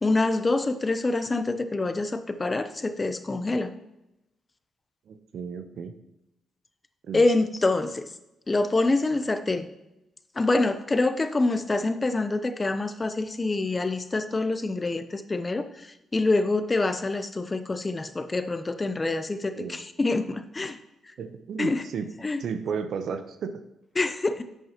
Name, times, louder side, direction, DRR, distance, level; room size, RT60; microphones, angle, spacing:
voice 1, 0.0-3.7 7.1-8.1 8.5-9.7 10.4-20.8 21.6-21.8 22.2-22.4 24.0-24.4, left 2 dB, 30° left, 10 dB, 0.8 m, -26 dB
voice 2, 5.1-5.9 7.0-7.2 19.6-19.8 21.2-22.1 22.4-23.6, right 6 dB, 70° right, 9 dB, 0.8 m, -33 dB
10.5 x 8.2 x 3.0 m, 0.91 s
supercardioid pair, 50°, 0 cm